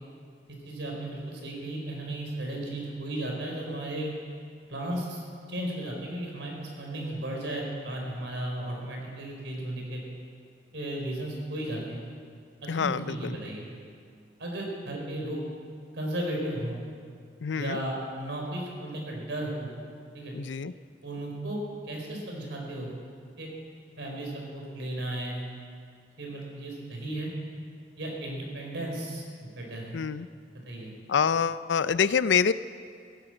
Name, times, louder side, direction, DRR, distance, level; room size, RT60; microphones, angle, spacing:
voice 1, 0.5-4.1 4.7-5.2 5.5-10.0 10.7-12.0 12.6-13.7 14.4-15.4 15.9-16.8 17.5-19.7 20.1-20.3 21.0-21.6 21.9-22.9 23.4-23.5 24.0-25.4 26.2-27.3 28.0-29.2 29.5-30.0 30.7-30.9, right 1 dB, 85° right, -1 dB, 4.2 m, -35 dB
voice 2, 12.7-13.4 17.4-17.8 20.3-20.7 29.9-30.3 31.1-32.5, left 6 dB, 80° left, 15 dB, 0.5 m, -26 dB
16.5 x 11.0 x 7.8 m, 2.2 s
head